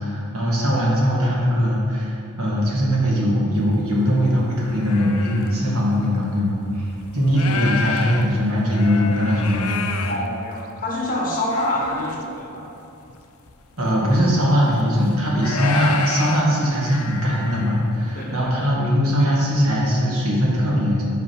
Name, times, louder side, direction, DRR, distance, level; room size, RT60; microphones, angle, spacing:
voice 1, 0.0-9.9 13.8-21.0, equal, 70° right, -4 dB, 1.7 m, -20 dB
sound 1, 3.6-3.7 4.2-5.6 6.2-6.3 6.8-10.8 11.3-12.3 12.5-12.6 13.1-13.2 13.5-14.1 14.8-17.9, left 5 dB, 70° left, 0.6 m, -30 dB
voice 2, 10.0-12.7 18.1-18.5, left 1 dB, 40° left, -3 dB, 1.5 m, -26 dB
5.5 x 5.3 x 6.1 m, 2.7 s
head